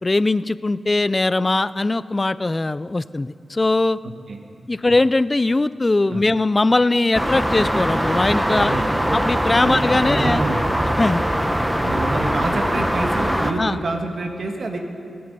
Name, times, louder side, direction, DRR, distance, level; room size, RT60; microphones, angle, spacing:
voice 1, 0.0-4.0 4.7-8.8 9.1-10.4 11.0-11.2 13.6-13.8, left 2 dB, 30° left, 17 dB, 0.4 m, -20 dB
voice 2, 4.0-4.4 6.1-6.3 8.5-8.8 9.6-10.6 11.8-14.8, right 2 dB, 65° right, 3 dB, 1.6 m, -27 dB
sound 1, 7.1-13.5, equal, 10° right, 1.2 m, -21 dB
24.5 x 8.7 x 5.4 m, 2.6 s
cardioid pair, 60°, 0 cm